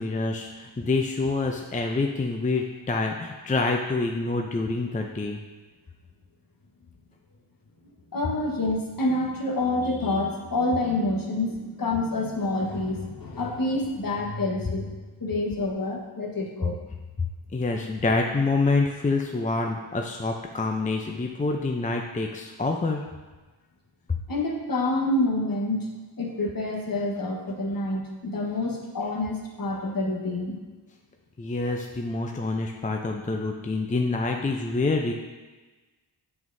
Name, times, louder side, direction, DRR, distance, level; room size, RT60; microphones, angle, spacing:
voice 1, 0.0-5.4 17.5-23.0 24.1-24.2 31.4-35.1, left 3 dB, 15° left, 2 dB, 0.5 m, -27 dB
voice 2, 8.1-14.9 15.2-16.8 24.3-25.9 26.2-30.6, left 2 dB, 45° left, -1 dB, 1.3 m, -27 dB
7.1 x 6.0 x 2.7 m, 1.2 s
cardioid pair, 40°, 47 cm